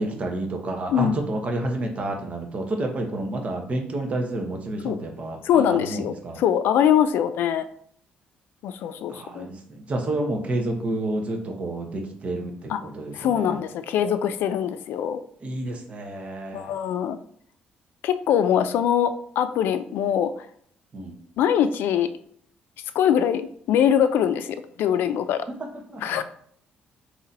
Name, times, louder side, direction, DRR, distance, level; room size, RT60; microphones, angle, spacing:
voice 1, 0.0-6.4 9.1-13.6 15.4-16.7 20.9-21.2 25.6-26.2, right 2 dB, 40° right, 2 dB, 1.0 m, -30 dB
voice 2, 5.4-7.6 8.6-9.5 12.7-12.8 13.1-15.2 16.5-17.2 18.0-20.5 21.4-22.1 22.9-25.4 26.0-26.2, left 9 dB, 85° left, 11 dB, 0.4 m, -23 dB
4.0 x 3.0 x 4.1 m, 0.62 s
cardioid pair, 115°, 3 cm